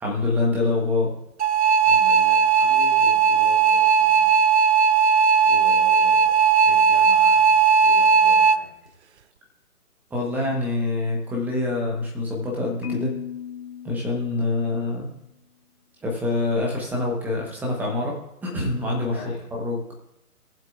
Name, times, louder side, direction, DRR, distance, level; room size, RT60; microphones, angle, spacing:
voice 1, 0.0-1.1 10.1-13.1 13.8-15.1 16.0-18.1 18.4-19.2 19.6-19.8, left 2 dB, 5° right, -2 dB, 1.1 m, -25 dB
sound 1, 1.4-8.6, right 6 dB, 50° right, 0.5 m, -17 dB
voice 2, 1.8-4.4 5.4-8.9 19.1-19.5, left 3 dB, 15° left, -4 dB, 0.5 m, -41 dB
Marimba xylophone, 12.8-15.0, left 9 dB, 70° left, 1.2 m, -36 dB
19.5 x 7.5 x 2.5 m, 0.82 s
figure-of-eight pair, 145°, 45 cm